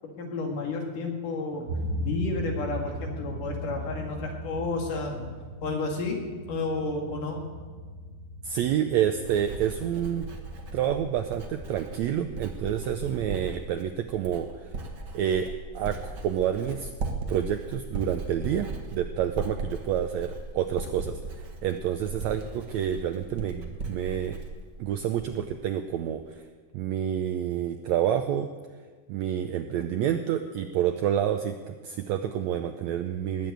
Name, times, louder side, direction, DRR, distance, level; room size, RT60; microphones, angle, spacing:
voice 1, 0.0-1.7 2.0-5.3 5.6-6.2 6.5-7.5, left 3 dB, 70° left, 1 dB, 3.6 m, -31 dB
sound 1, 1.7-13.2, equal, 65° right, 1.0 m, -38 dB
voice 2, 8.4-10.3 10.7-14.5 15.1-16.9 17.3-24.4 24.8-26.4 26.7-28.5 29.1-33.5, right 10 dB, 85° right, 7 dB, 1.5 m, -28 dB
Writing, 8.5-25.6 25.8-26.3, right 3 dB, 45° right, 1.5 m, -38 dB
19.5 x 6.8 x 9.0 m, 1.5 s
omnidirectional pair, 3.9 m